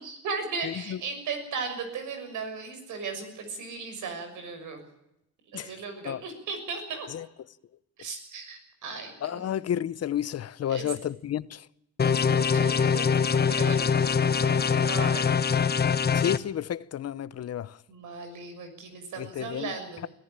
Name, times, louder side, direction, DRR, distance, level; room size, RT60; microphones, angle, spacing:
voice 1, 0.0-4.8 5.5-7.1 8.0-9.5 10.7-10.9 12.0-15.3 17.9-20.0, right 4 dB, 80° right, 6.5 m, -37 dB
voice 2, 0.6-1.0 5.5-5.7 6.0-6.2 7.1-7.2 9.2-11.6 16.1-17.8 19.2-19.7, left 10 dB, 55° left, 0.8 m, -31 dB
sound 1, 12.0-16.4, left 6 dB, 30° left, 1.0 m, -23 dB
22.5 x 15.0 x 8.9 m
cardioid pair, 90°, 30 cm